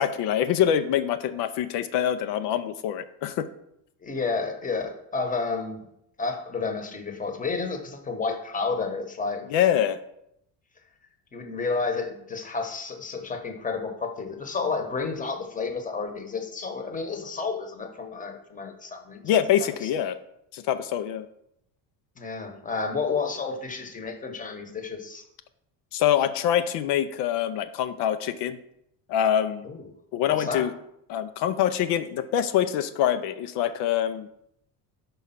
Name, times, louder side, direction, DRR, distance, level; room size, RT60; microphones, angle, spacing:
voice 1, 0.0-3.5 9.5-10.0 19.2-20.2 20.5-21.3 25.9-28.6 29.1-29.7 30.1-30.7 31.1-34.3, left 10 dB, 75° left, 9 dB, 0.6 m, -25 dB
voice 2, 4.0-5.8 6.2-9.4 11.3-19.9 22.2-25.2 29.6-29.8 30.3-30.7, left 4 dB, 20° left, 5 dB, 1.0 m, -31 dB
5.4 x 4.8 x 5.7 m, 0.76 s
cardioid pair, 125°, 41 cm